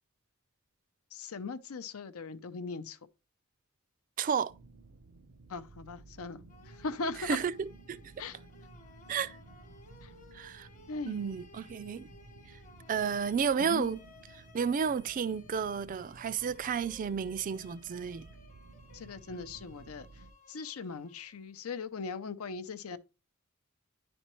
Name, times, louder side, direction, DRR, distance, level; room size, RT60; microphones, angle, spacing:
voice 1, 1.1-3.0 5.5-6.4 6.8-7.4 8.2-8.4 10.0-10.1 10.9-11.2 13.6-13.8 18.9-20.1 20.5-23.0, left 4 dB, 85° left, 0.6 m, -39 dB
voice 2, 4.2-4.5 7.2-8.0 9.1-9.4 10.3-10.7 11.1-12.1 12.9-14.0 14.3-18.3, right 6 dB, 40° right, 0.3 m, -32 dB
sound 1, 4.5-20.3, right 3 dB, 75° right, 0.7 m, -55 dB
sound 2, 6.5-21.6, left 2 dB, 40° left, 1.1 m, -58 dB
9.9 x 4.3 x 3.0 m
head